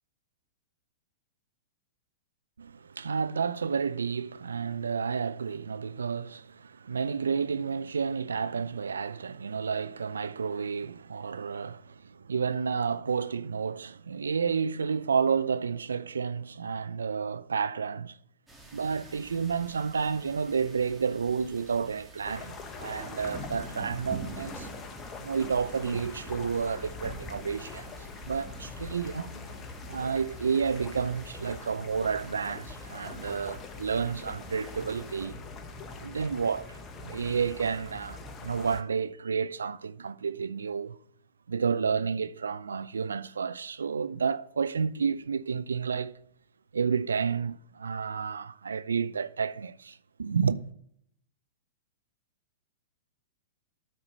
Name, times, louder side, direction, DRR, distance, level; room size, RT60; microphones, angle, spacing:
voice 1, 2.6-18.2 18.7-24.7 25.2-27.9 28.2-29.5 29.9-35.4 36.0-41.0 41.5-46.2 46.7-50.6, right 6 dB, 80° right, 0.4 m, -31 dB
sound 1, 18.5-35.3, right 2 dB, 5° right, 1.9 m, -47 dB
sound 2, 22.2-38.8, left 4 dB, 25° left, 1.1 m, -43 dB
12.5 x 4.4 x 5.1 m
hypercardioid pair, 110°, 0 cm